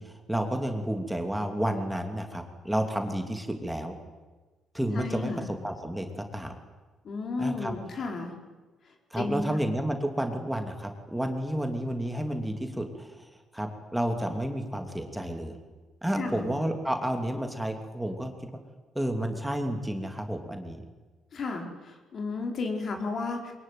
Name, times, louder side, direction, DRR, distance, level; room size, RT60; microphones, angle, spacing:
voice 1, 0.0-3.9 4.7-6.5 7.4-7.7 9.1-15.5 16.0-18.5 18.9-20.8, right 1 dB, 5° right, 4 dB, 3.0 m, -31 dB
voice 2, 4.9-5.5 7.0-8.3 9.2-9.6 16.2-16.5 21.3-23.5, left 3 dB, 55° left, 3 dB, 4.7 m, -33 dB
23.0 x 21.5 x 9.4 m, 1.3 s
cardioid pair, 90°, 0 cm